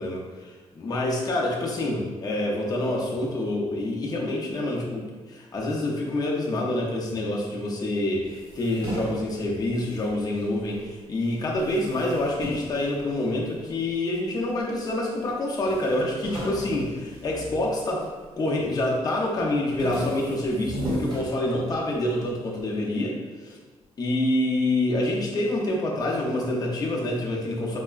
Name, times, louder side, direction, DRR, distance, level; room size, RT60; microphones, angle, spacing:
voice 1, 0.0-18.1 18.4-23.2 23.4-23.6 24.0-27.8, left 1 dB, 35° left, -2 dB, 0.5 m, -27 dB
sound 1, 8.2-10.9 11.2-13.7 14.3-15.0 15.3-15.4 15.6-18.2 18.6-19.0 19.4-22.0, equal, 40° right, 1.3 m, -36 dB
4.4 x 2.1 x 2.3 m, 1.3 s
wide cardioid pair, 155°, 11 cm